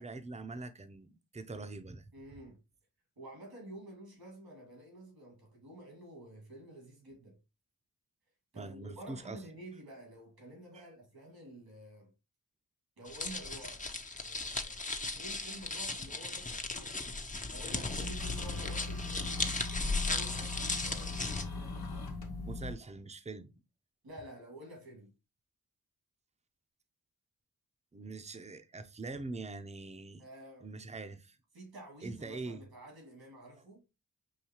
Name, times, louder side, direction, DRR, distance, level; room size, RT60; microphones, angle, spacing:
voice 1, 0.0-2.1 8.5-9.4 10.7-10.9 22.5-23.5 27.9-30.2 30.6-31.4 32.0-32.7, right 3 dB, 20° right, 0.7 m, -43 dB
voice 2, 2.1-2.6 3.2-7.4 8.5-12.1 13.0-13.9 14.2-17.1 17.5-19.6 20.0-21.4 24.0-25.1 30.2-30.7 31.5-33.9, right 1 dB, 85° right, 2.3 m, -50 dB
sound 1, 13.1-21.4, left 3 dB, 20° left, 0.8 m, -37 dB
sound 2, 17.9-22.7, left 3 dB, 85° left, 1.1 m, -38 dB
5.6 x 2.7 x 2.9 m
cardioid pair, 40°, 36 cm